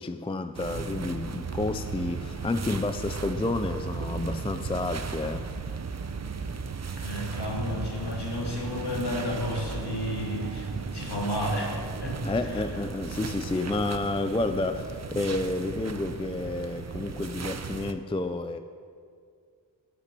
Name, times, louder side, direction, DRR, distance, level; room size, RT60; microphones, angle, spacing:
voice 1, 0.0-5.5 12.2-18.6, left 2 dB, 15° left, 9 dB, 0.4 m, -30 dB
sound 1, 0.5-17.9, right 5 dB, 35° right, 0.6 m, -36 dB
voice 2, 7.0-12.6, left 1 dB, 60° left, -2 dB, 2.4 m, -32 dB
16.0 x 6.1 x 5.9 m, 2.1 s
wide cardioid pair, 100°, 45 cm